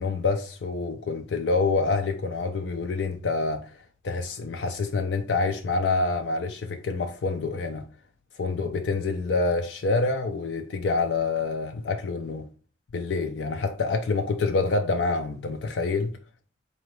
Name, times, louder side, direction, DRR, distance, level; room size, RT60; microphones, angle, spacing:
voice 1, 0.0-3.8 4.0-7.8 8.4-12.5 12.9-16.1, left 3 dB, 65° left, 0.4 m, -27 dB
4.2 x 2.8 x 3.1 m
head